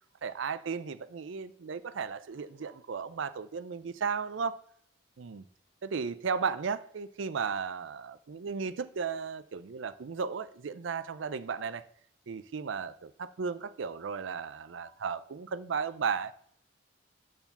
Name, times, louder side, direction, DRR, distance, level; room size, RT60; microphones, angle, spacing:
voice 1, 0.2-4.6 5.2-5.4 5.8-11.8 12.3-16.3, right 5 dB, 70° right, 0.5 m, -35 dB
10.5 x 4.8 x 5.7 m
head